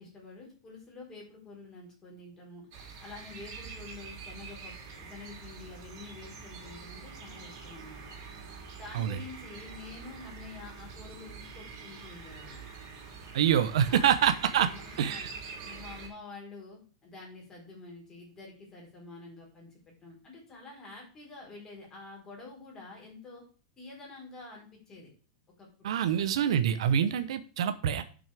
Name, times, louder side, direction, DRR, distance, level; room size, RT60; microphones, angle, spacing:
voice 1, 0.0-2.7 3.0-8.1 8.7-12.6 13.9-14.1 14.7-15.3 15.6-23.5 23.8-25.1 25.6-26.2, left 3 dB, 20° left, -2 dB, 4.1 m, -48 dB
sound 1, 2.7-16.1, right 5 dB, 50° right, 3.5 m, -45 dB
voice 2, 13.3-14.7 15.0-15.3 25.8-28.0, right 9 dB, 80° right, 10 dB, 0.8 m, -26 dB
12.0 x 6.2 x 3.4 m, 0.39 s
supercardioid pair, 155°, 3 cm